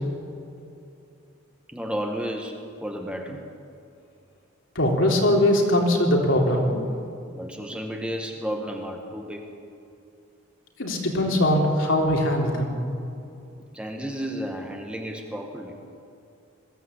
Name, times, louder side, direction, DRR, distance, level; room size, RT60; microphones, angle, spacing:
voice 1, 1.7-3.4 7.3-9.4 13.7-15.8, equal, 5° right, 2 dB, 1.4 m, -32 dB
voice 2, 4.8-6.8 10.8-12.8, left 1 dB, 70° left, 0 dB, 3.5 m, -21 dB
21.5 x 15.5 x 8.2 m, 2.6 s
head